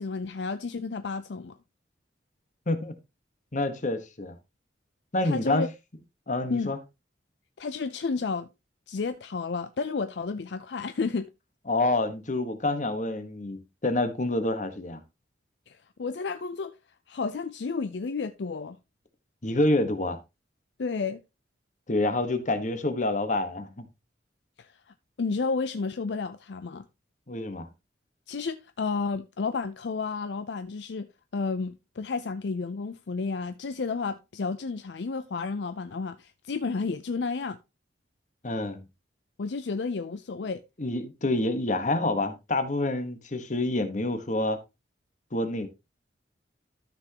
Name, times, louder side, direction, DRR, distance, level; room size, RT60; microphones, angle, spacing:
voice 1, 0.0-1.6 5.2-5.7 6.5-6.7 7.6-8.5 8.9-11.3 15.7-16.7 17.1-18.8 20.8-21.2 24.6-24.7 25.2-26.8 28.3-37.6 39.4-40.6, left 4 dB, 65° left, 0.5 m, -31 dB
voice 2, 3.5-4.4 5.1-5.6 6.3-6.8 11.7-15.0 19.4-20.2 21.9-23.8 27.3-27.7 38.4-38.8 40.8-44.6 45.3-45.7, left 2 dB, 40° left, 1.2 m, -27 dB
13.0 x 6.0 x 2.9 m
head